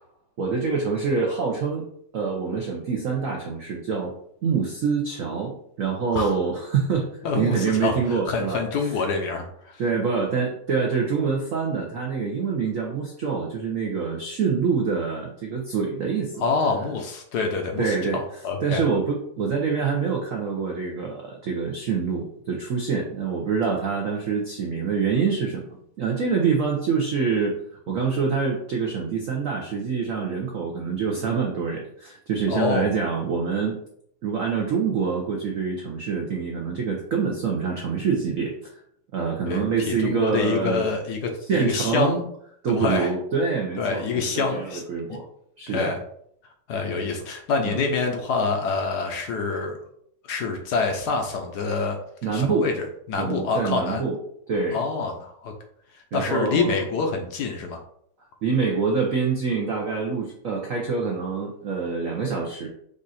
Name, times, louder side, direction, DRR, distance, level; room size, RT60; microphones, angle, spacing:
voice 1, 0.4-1.8 2.1-4.1 4.4-8.6 9.8-16.4 17.8-18.2 18.6-27.6 27.9-33.8 34.2-38.5 39.1-40.8 41.5-42.3 42.6-45.2 45.6-45.9 47.6-47.8 52.2-52.7 53.2-54.2 54.5-54.8 56.1-56.8 58.4-62.7, right 5 dB, 75° right, 0 dB, 0.7 m, -26 dB
voice 2, 7.2-9.8 16.4-18.8 32.5-32.9 39.4-42.2 42.7-43.1 43.8-44.8 45.1-45.2 45.7-46.0 46.7-49.8 50.3-52.0 52.3-54.0 54.7-55.5 55.9-57.8, left 4 dB, 65° left, 3 dB, 1.0 m, -26 dB
5.2 x 2.5 x 4.1 m, 0.68 s
omnidirectional pair, 2.3 m